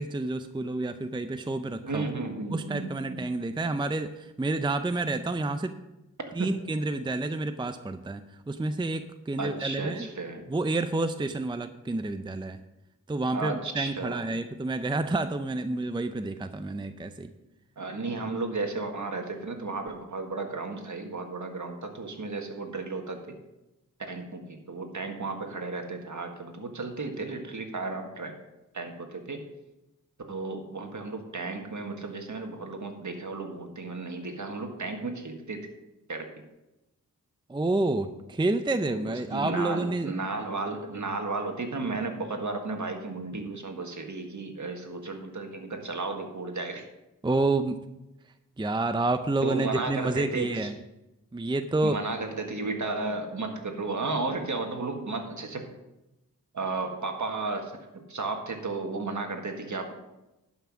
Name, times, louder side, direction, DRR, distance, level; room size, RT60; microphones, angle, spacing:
voice 1, 0.0-2.0 2.5-5.7 6.4-10.1 10.5-12.6 13.1-17.3 37.5-40.1 47.2-47.8 48.6-50.7 51.3-52.0, right 2 dB, 15° right, 9 dB, 0.5 m, -29 dB
voice 2, 1.8-3.3 6.3-6.5 9.4-10.4 13.3-14.3 17.8-23.2 24.0-28.3 28.7-29.4 30.3-35.6 36.1-36.3 38.9-46.8 49.4-50.7 51.8-55.6 56.5-59.9, right 3 dB, 55° right, 4 dB, 1.6 m, -34 dB
11.0 x 5.8 x 6.2 m, 0.96 s
wide cardioid pair, 65°, 34 cm